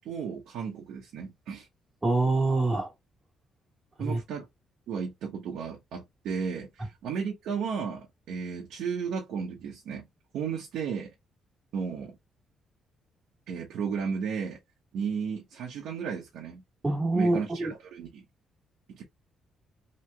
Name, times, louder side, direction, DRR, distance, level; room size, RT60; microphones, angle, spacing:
voice 1, 0.0-1.7 4.0-4.5 4.9-10.1 10.3-11.1 11.7-12.2 13.5-14.6 14.9-16.6 17.1-18.2 18.9-19.0, right 6 dB, 80° right, 0.8 m, -34 dB
voice 2, 2.0-2.9 4.0-4.2 16.8-17.7, right 2 dB, 15° right, 1.4 m, -25 dB
3.0 x 2.9 x 2.2 m
cardioid pair, 90°, 0 cm